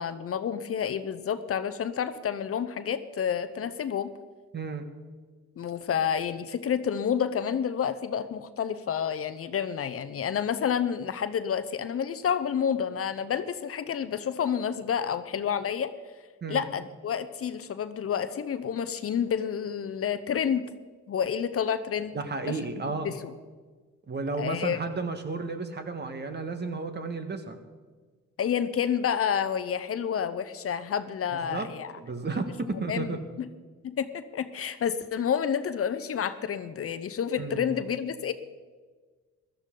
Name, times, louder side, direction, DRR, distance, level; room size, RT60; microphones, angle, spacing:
voice 1, 0.0-4.1 5.6-15.9 16.5-20.7 21.1-22.2 22.5-22.6 23.0-23.3 24.4-24.8 28.4-31.9 32.7-33.5 33.8-38.3, left 8 dB, 50° left, 12 dB, 0.7 m, -29 dB
voice 2, 4.5-4.9 16.4-16.7 22.1-23.1 24.1-27.6 31.4-31.7 32.0-33.2 37.4-37.7, right 4 dB, 35° right, 8 dB, 1.5 m, -33 dB
15.5 x 13.0 x 3.9 m, 1.4 s
cardioid pair, 90°, 30 cm